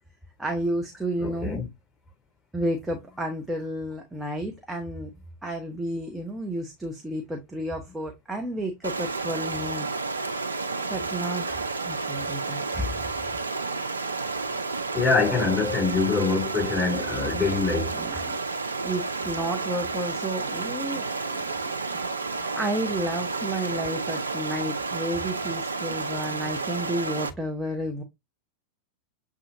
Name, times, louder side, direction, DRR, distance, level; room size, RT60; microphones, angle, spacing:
voice 1, 0.4-1.6 2.5-5.1 5.4-9.9 10.9-13.1 17.9-18.4 18.8-21.1 22.3-28.0, right 1 dB, 5° right, 0.8 m, -31 dB
voice 2, 1.2-1.7 14.9-17.9, left 4 dB, 10° left, 3.4 m, -24 dB
Stream, 8.8-27.3, right 4 dB, 75° right, 0.6 m, -31 dB
7.0 x 2.5 x 2.7 m
figure-of-eight pair, 90°, 0 cm